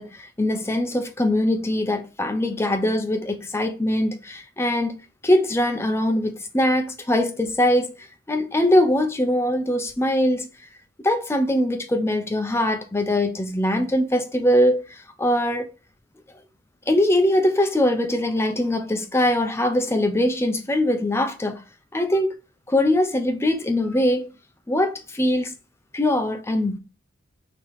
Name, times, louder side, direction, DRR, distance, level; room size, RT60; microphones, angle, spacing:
voice 1, 0.0-4.9 5.2-10.5 11.0-15.7 16.9-21.6 21.9-22.3 22.7-24.3 24.7-25.5 25.9-26.8, left 1 dB, 15° left, 0.5 m, -22 dB
5.1 x 2.9 x 3.1 m
head